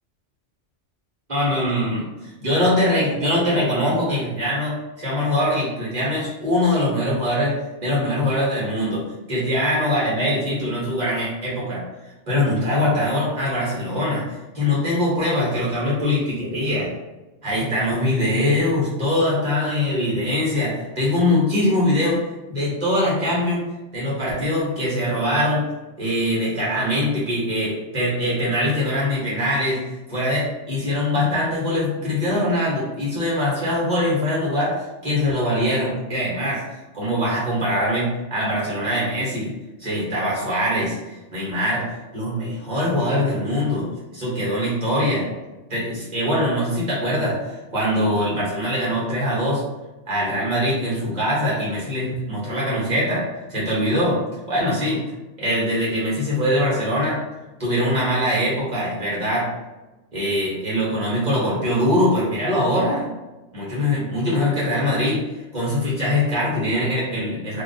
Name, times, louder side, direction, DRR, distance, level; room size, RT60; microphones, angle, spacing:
voice 1, 1.3-7.5 7.8-9.0 9.3-11.8 12.3-14.3 14.5-16.9 17.4-22.2 22.5-23.6 23.9-25.6 26.0-36.6 36.9-39.5 39.8-43.9 44.1-45.3 45.7-49.6 50.1-53.2 53.5-54.2 54.5-55.0 55.4-57.2 57.6-59.5 60.1-63.0 63.5-65.2 65.5-67.6, left 1 dB, 35° right, -6 dB, 1.5 m, -22 dB
2.9 x 2.5 x 4.0 m, 1.1 s
omnidirectional pair, 1.2 m